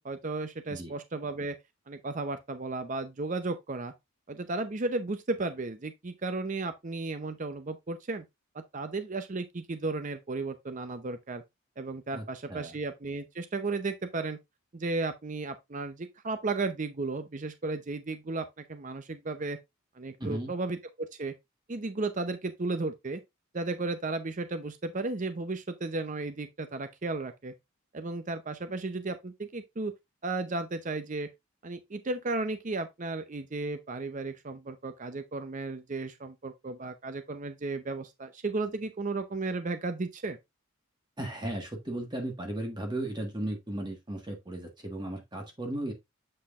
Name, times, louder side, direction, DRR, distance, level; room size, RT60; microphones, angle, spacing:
voice 1, 0.0-1.6 1.9-3.9 4.3-8.2 8.7-11.4 11.8-14.4 14.7-19.6 20.0-21.3 21.7-23.2 23.5-27.5 27.9-29.9 30.2-31.3 31.6-40.4, right 3 dB, 40° right, 0.6 m, -34 dB
voice 2, 12.1-12.7 20.2-20.5 41.2-45.9, right 1 dB, 20° right, 1.5 m, -36 dB
7.7 x 6.3 x 2.4 m
head